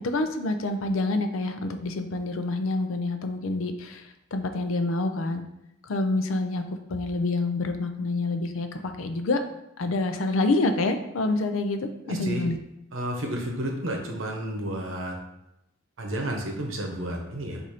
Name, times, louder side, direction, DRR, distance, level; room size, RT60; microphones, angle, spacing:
voice 1, 0.0-4.0 4.3-5.4 5.9-6.6 6.9-9.4 9.8-11.9 12.2-12.6, left 2 dB, 75° left, 7 dB, 0.5 m, -27 dB
voice 2, 12.0-12.4 12.9-15.2 16.0-17.6, right 1 dB, 70° right, 1 dB, 0.9 m, -31 dB
4.1 x 2.6 x 4.8 m, 0.86 s
head